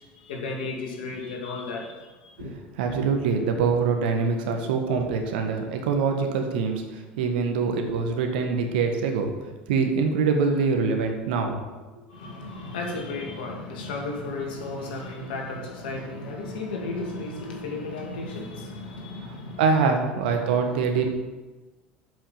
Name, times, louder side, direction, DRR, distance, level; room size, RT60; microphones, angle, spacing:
voice 1, 0.0-2.5 12.1-19.6 20.3-21.1, left 3 dB, 70° left, 1 dB, 2.2 m, -34 dB
voice 2, 2.8-6.8 7.2-9.3 9.7-11.6 19.6-21.1, right 5 dB, 70° right, 4 dB, 1.5 m, -24 dB
7.6 x 5.9 x 7.4 m, 1.2 s
hypercardioid pair, 70°, 5 cm